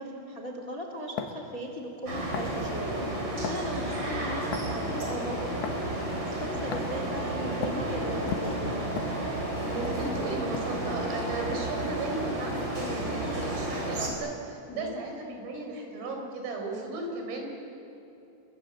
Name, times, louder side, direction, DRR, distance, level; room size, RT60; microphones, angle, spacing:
voice 1, 0.0-3.1 3.5-8.8 14.7-15.0, equal, 30° left, 2 dB, 1.5 m, -38 dB
sound 1, 1.2-1.4 2.3-2.6 3.4-3.7 4.5-4.8 5.6-5.8 6.7-7.0 7.6-7.8 8.3-9.5 9.9-10.0 10.5-10.8, left 8 dB, 70° left, 3.7 m, -35 dB
sound 2, 2.1-14.1, right 1 dB, 30° right, 4.9 m, -32 dB
voice 2, 9.7-17.5, right 3 dB, 80° right, 2 dB, 6.6 m, -36 dB
28.5 x 24.0 x 7.8 m, 2.8 s
omnidirectional pair, 5.8 m